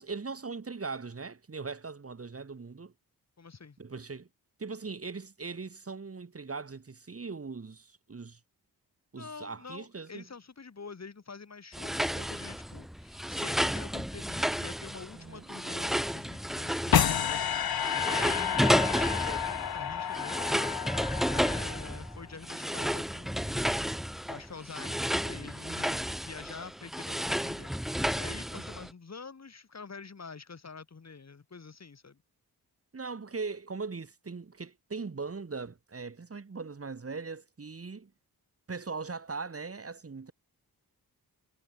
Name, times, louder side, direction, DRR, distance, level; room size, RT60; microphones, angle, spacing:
voice 1, 0.0-2.9 3.8-4.3 4.6-8.4 9.1-10.2 15.1-15.5 25.6-26.1 28.5-28.8 32.9-38.1 38.7-40.3, right 4 dB, 40° right, 4.2 m, -40 dB
voice 2, 3.4-3.8 9.2-20.8 21.3-26.0 26.2-32.2, left 5 dB, 45° left, 7.6 m, -46 dB
sound 1, 11.7-17.5 17.8-28.9, equal, ahead, 0.8 m, -32 dB
sound 2, 16.9-22.1, left 8 dB, 75° left, 2.3 m, -30 dB
wide cardioid pair, 110°, 37 cm